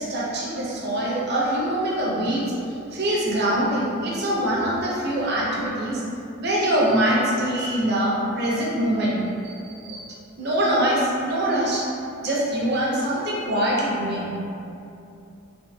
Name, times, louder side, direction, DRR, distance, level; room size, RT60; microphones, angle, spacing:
voice 1, 0.0-2.4 2.9-6.0 6.4-9.2 9.4-11.9 12.2-14.3, right 1 dB, 50° right, -5 dB, 0.7 m, -24 dB
3.5 x 2.6 x 2.7 m, 2.6 s
head